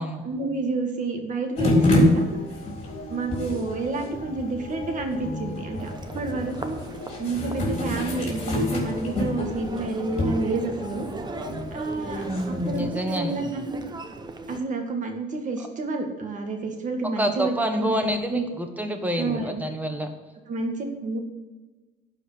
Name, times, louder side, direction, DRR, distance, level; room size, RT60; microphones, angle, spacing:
voice 1, 0.2-2.4 3.1-6.8 7.2-11.1 11.7-13.8 14.5-18.4 19.1-19.6 20.5-21.2, right 3 dB, 50° right, 4 dB, 1.8 m, -30 dB
sound 1, 1.6-12.9, left 1 dB, 35° left, 3.7 m, -28 dB
voice 2, 1.7-2.1 12.2-13.4 17.2-20.1, equal, 10° right, 5 dB, 1.3 m, -27 dB
Human voice, 5.8-14.6, right 4 dB, 25° right, 0.9 m, -38 dB
11.5 x 4.9 x 8.3 m, 1.2 s
cardioid pair, 110°, 17 cm